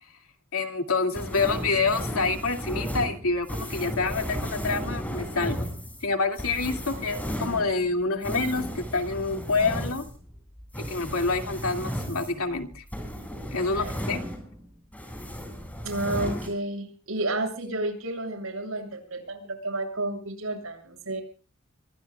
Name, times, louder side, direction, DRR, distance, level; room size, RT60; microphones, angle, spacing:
voice 1, 0.5-5.6 6.0-10.0 10.8-12.8 13.5-14.2, left 3 dB, 85° left, 5 dB, 2.5 m, -27 dB
sound 1, 1.1-14.6 14.9-16.5, equal, 5° left, 6.7 m, -34 dB
voice 2, 15.8-21.2, right 2 dB, 75° right, 6 dB, 7.5 m, -31 dB
25.0 x 23.0 x 2.4 m, 0.38 s
head